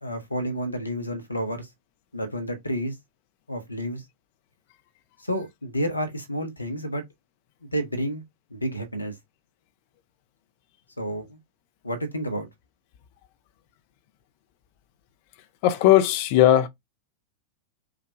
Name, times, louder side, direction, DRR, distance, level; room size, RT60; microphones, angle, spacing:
voice 1, 0.0-1.7 2.1-2.9 3.5-4.0 5.2-7.0 7.6-8.2 8.5-9.1 11.0-11.4 11.8-12.5, equal, 85° left, 1.1 m, -30 dB
voice 2, 15.6-16.7, left 12 dB, 45° left, 0.7 m, -18 dB
5.1 x 2.4 x 3.5 m
figure-of-eight pair, 90°, 0 cm